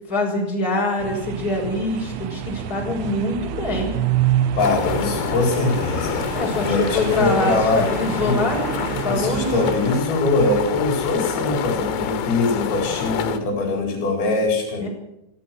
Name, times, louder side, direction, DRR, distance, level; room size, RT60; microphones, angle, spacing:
voice 1, 0.1-4.0 6.3-9.6 14.8-14.9, left 2 dB, 20° left, 0 dB, 6.2 m, -24 dB
sound 1, 1.0-10.0, right 11 dB, 80° right, 3.4 m, -28 dB
sound 2, 4.6-13.4, left 8 dB, 80° left, 3.9 m, -27 dB
voice 2, 4.6-6.2 6.6-7.9 8.2-8.4 9.0-14.9, left 3 dB, 55° left, 2 dB, 6.0 m, -22 dB
25.0 x 14.5 x 7.7 m, 0.84 s
omnidirectional pair, 5.5 m